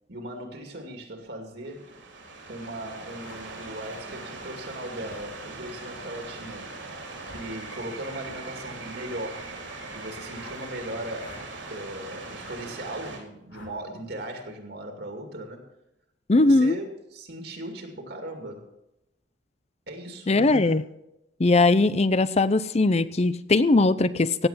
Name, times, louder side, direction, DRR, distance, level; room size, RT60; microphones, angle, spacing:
voice 1, 0.1-2.0 2.5-6.7 7.3-9.4 9.9-11.4 11.7-15.6 16.3-18.8 19.9-20.8, right 1 dB, 60° right, 4 dB, 2.5 m, -38 dB
sound 1, 1.6-13.2, right 3 dB, 80° right, 3.5 m, -40 dB
sound 2, 3.2-3.4 5.1-5.3 7.2-7.5 8.2-8.4 10.3-10.6 11.2-11.5 12.4-12.6 13.5-13.8, left 1 dB, 90° left, 3.5 m, -47 dB
voice 2, 16.3-16.8 20.3-20.8 21.4-24.5, left 2 dB, 35° left, 15 dB, 0.6 m, -20 dB
17.0 x 8.0 x 5.7 m, 0.86 s
head